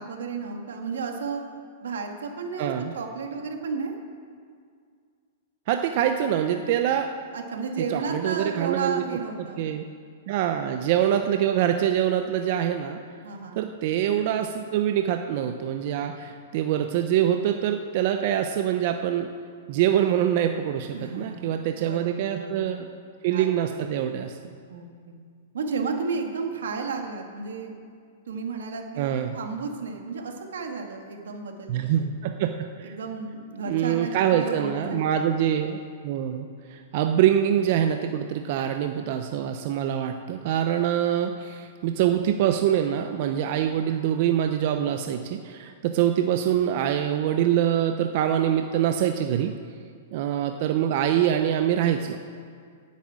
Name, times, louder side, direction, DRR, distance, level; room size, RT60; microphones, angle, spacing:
voice 1, 0.0-1.4 1.8-3.9 7.3-9.7 13.2-13.7 20.9-22.7 23.3-23.9 24.7-25.2 25.5-27.7 28.3-32.1 32.8-35.2, right 4 dB, 85° right, 3 dB, 1.9 m, -33 dB
voice 2, 2.6-2.9 5.7-7.1 7.9-9.0 9.6-9.8 10.3-13.0 13.5-19.3 19.7-22.9 23.2-24.5 29.0-29.4 31.7-32.9 33.7-35.8 36.0-49.6 50.1-52.2, right 10 dB, 50° right, 6 dB, 0.7 m, -24 dB
9.8 x 8.5 x 8.7 m, 2.1 s
hypercardioid pair, 150°, 0 cm